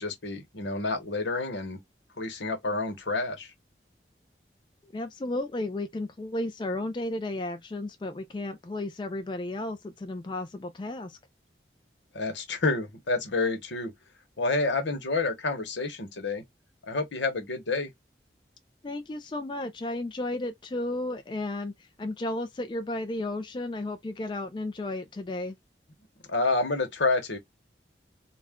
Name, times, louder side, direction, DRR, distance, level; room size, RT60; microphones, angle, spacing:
voice 1, 0.0-1.8 2.2-3.5 12.1-13.9 14.4-16.4 16.8-17.9 26.3-27.4, left 3 dB, 90° left, 1.0 m, -29 dB
voice 2, 4.8-11.2 18.8-25.6, left 2 dB, 25° left, 0.3 m, -33 dB
2.4 x 2.1 x 3.4 m
head